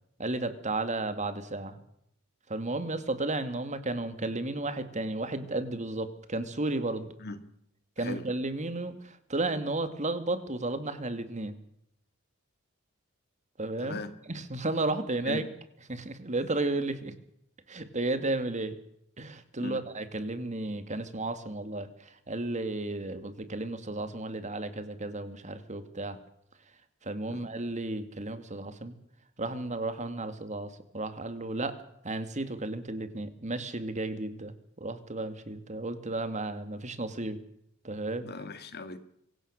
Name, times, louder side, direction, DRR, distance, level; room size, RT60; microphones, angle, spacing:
voice 1, 0.2-1.8 2.5-7.1 8.0-11.6 13.6-14.0 14.3-15.5 15.9-17.1 17.7-18.7 19.2-26.2 27.0-29.0 29.4-31.7 32.0-37.4 37.8-38.3, right 2 dB, 35° right, 10 dB, 2.2 m, -33 dB
voice 2, 7.2-7.5 8.0-8.2 13.8-14.1 15.3-15.5 19.6-19.8 27.3-27.4 38.2-39.0, left 3 dB, 50° left, 11 dB, 2.1 m, -39 dB
25.0 x 16.5 x 6.6 m, 0.72 s
head